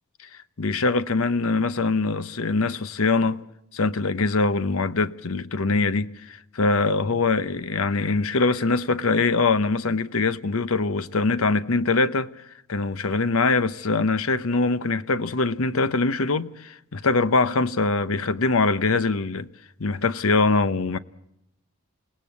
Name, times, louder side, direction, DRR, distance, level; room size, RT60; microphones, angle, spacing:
voice 1, 0.6-3.5 3.7-12.3 12.7-19.5 19.8-21.0, left 3 dB, 65° left, 0.8 m, -23 dB
29.0 x 18.0 x 8.4 m
head